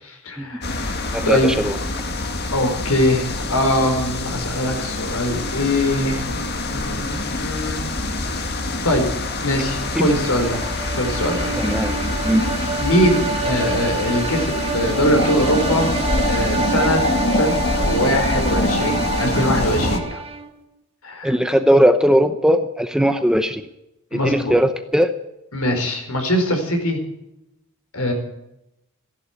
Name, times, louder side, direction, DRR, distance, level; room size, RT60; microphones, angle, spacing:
voice 1, 0.0-1.0 1.2-1.5 2.5-6.3 6.7-7.8 8.4-8.6 8.8-9.0 9.4-10.6 11.0-11.5 12.8-15.9 16.2-17.0 17.3-20.2 21.0-21.3 24.1-24.5 25.5-27.0 27.9-28.1, left 1 dB, 75° left, 4 dB, 4.7 m, -22 dB
sound 1, 0.6-20.0, left 2 dB, 45° left, 1.8 m, -25 dB
voice 2, 1.1-1.8 9.9-10.1 11.6-11.9 12.2-12.5 21.2-23.6 24.1-25.1, equal, 5° right, 8 dB, 0.7 m, -18 dB
sound 2, 9.6-20.6, right 4 dB, 25° right, 1.5 m, -28 dB
15.5 x 11.0 x 8.2 m, 0.88 s
head